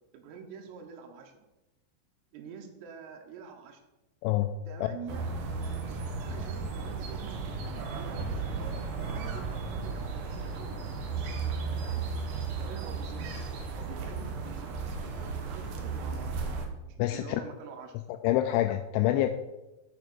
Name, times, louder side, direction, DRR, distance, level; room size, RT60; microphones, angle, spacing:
voice 1, 0.1-1.3 2.3-3.8 4.7-5.3 6.2-10.9 11.2-11.3 11.6-12.1 12.6-13.3 13.8-16.5 16.8-18.0 18.5-18.6, right 6 dB, 90° right, 3 dB, 3.7 m, -47 dB
voice 2, 4.2-4.5 17.0-17.2 18.2-19.3, left 14 dB, 85° left, 8 dB, 2.7 m, -26 dB
sound 1, 5.1-16.7, right 4 dB, 70° right, 2.5 m, -35 dB
7.4 x 7.1 x 6.1 m, 1.0 s
omnidirectional pair, 5.8 m